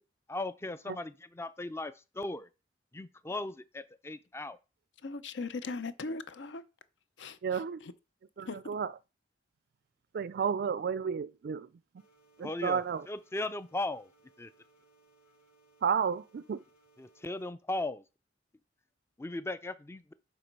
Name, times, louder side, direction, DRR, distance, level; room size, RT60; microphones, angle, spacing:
voice 1, 0.3-2.5 2.9-4.6 12.4-12.8 13.1-14.1 14.4-14.5 17.0-18.0 19.2-20.1, left 2 dB, 15° left, 0.4 m, -37 dB
voice 2, 5.0-6.6 7.2-7.9 8.5-8.6, left 3 dB, 65° left, 0.7 m, -39 dB
voice 3, 7.4-7.8 8.4-8.9 10.1-11.7 12.4-13.1 15.8-16.6, right 7 dB, 55° right, 0.3 m, -32 dB
sound 1, 12.0-17.5, right 3 dB, 45° left, 2.7 m, -66 dB
7.6 x 4.1 x 5.2 m
head